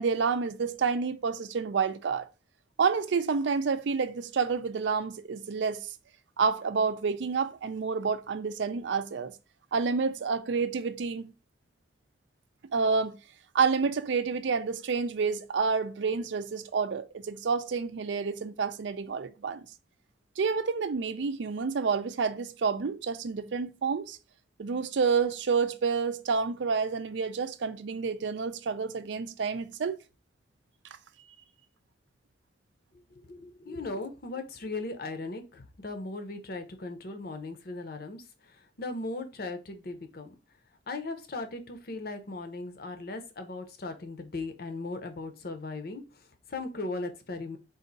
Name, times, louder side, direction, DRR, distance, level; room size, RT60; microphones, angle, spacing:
voice 1, 0.0-2.3 2.8-5.9 6.4-9.3 9.7-11.3 12.7-13.1 13.5-19.7 20.4-24.2 24.6-30.0, right 5 dB, 75° right, 0.4 m, -29 dB
voice 2, 33.1-40.3 40.9-47.6, left 3 dB, 55° left, 0.7 m, -38 dB
3.9 x 2.6 x 3.9 m
head